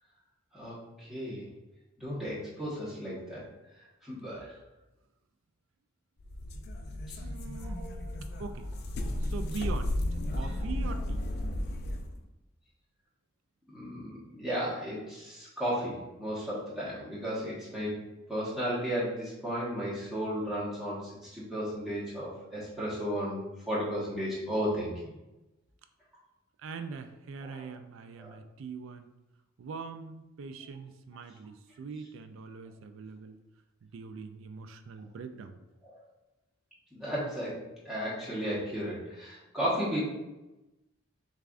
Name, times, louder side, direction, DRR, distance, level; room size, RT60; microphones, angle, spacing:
voice 1, 0.5-1.5 2.0-3.5 4.0-4.5 7.1-7.2 7.6-8.0 10.3-10.5 13.7-17.9 18.3-25.1 27.4-27.7 28.2-28.3 35.8-36.0 36.9-40.0, equal, ahead, -8 dB, 1.1 m, -34 dB
sound 1, 6.2-12.2, left 1 dB, 50° left, 0.4 m, -34 dB
voice 2, 7.2-7.9 8.4-8.7 9.2-10.0 10.3-11.3 26.6-29.1 29.6-33.4 33.8-35.6, right 5 dB, 65° right, 8 dB, 0.3 m, -42 dB
6.5 x 2.4 x 2.4 m, 0.99 s
head